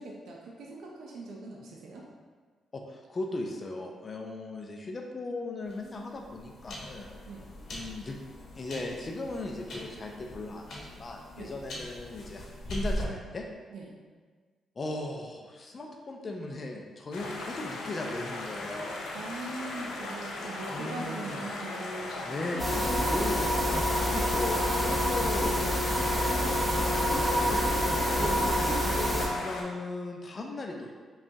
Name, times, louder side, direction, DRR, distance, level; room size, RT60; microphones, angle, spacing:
voice 1, 0.0-2.1 7.2-7.4 11.4-11.6 13.7-14.0 19.1-23.5 28.2-28.8, right 2 dB, 70° right, -2 dB, 0.5 m, -41 dB
voice 2, 2.7-7.1 7.7-8.2 8.6-13.5 14.8-19.0 20.7-21.5 22.2-23.4 24.1-26.6 26.9-28.2 28.7-30.9, left 2 dB, 35° left, 1 dB, 0.4 m, -38 dB
sound 1, 5.6-13.0, equal, 70° left, 1.0 m, -40 dB
sound 2, 17.1-29.6, left 2 dB, 90° left, 0.5 m, -38 dB
sound 3, 22.6-29.3, equal, ahead, 0.8 m, -27 dB
5.0 x 2.4 x 2.7 m, 1.5 s
cardioid pair, 85°, 0 cm